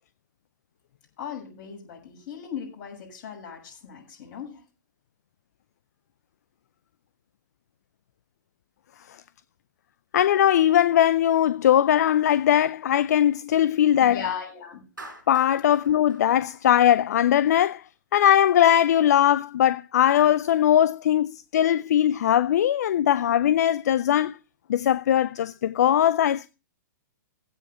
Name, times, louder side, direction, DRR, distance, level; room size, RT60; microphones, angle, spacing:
voice 1, 1.2-4.6 14.0-14.8, left 7 dB, 40° left, 6.9 m, -37 dB
voice 2, 10.1-14.2 15.3-17.8 18.1-24.4 24.7-26.5, left 11 dB, 60° left, 0.5 m, -20 dB
Clapping, 15.0-17.3, right 2 dB, 90° right, 4.3 m, -46 dB
16.0 x 5.7 x 5.5 m
figure-of-eight pair, 115°, 10 cm